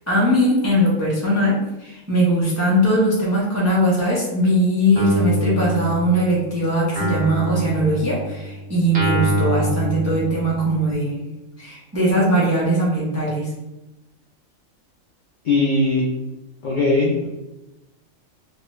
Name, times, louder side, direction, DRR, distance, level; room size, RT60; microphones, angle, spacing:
voice 1, 0.0-11.2 11.6-13.5, equal, 20° right, -6 dB, 0.4 m, -20 dB
Guitar, 5.0-6.5 7.0-10.8, right 1 dB, 70° right, 1.1 m, -25 dB
voice 2, 15.4-16.1 16.6-17.3, left 2 dB, 65° left, -3 dB, 0.4 m, -19 dB
3.0 x 2.3 x 3.0 m, 0.99 s
omnidirectional pair, 1.5 m